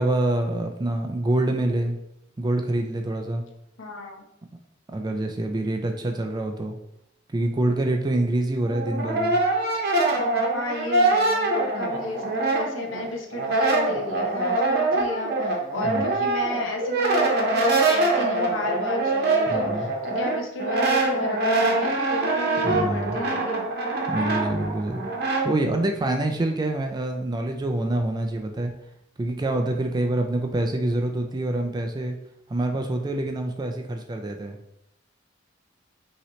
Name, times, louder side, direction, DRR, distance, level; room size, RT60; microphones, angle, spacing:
voice 1, 0.0-2.0 2.4-3.4 4.9-6.8 7.3-9.4 15.8-16.0 19.5-19.9 22.6-23.2 24.1-25.0 25.4-28.7 29.2-32.2 32.5-34.6, right 1 dB, 20° right, 4 dB, 0.4 m, -26 dB
voice 2, 3.8-4.2 10.5-23.7, left 2 dB, 75° left, 1 dB, 0.9 m, -33 dB
Brass instrument, 8.6-13.0 13.3-25.5, right 2 dB, 55° right, 0.9 m, -24 dB
5.6 x 2.9 x 3.1 m, 0.81 s
head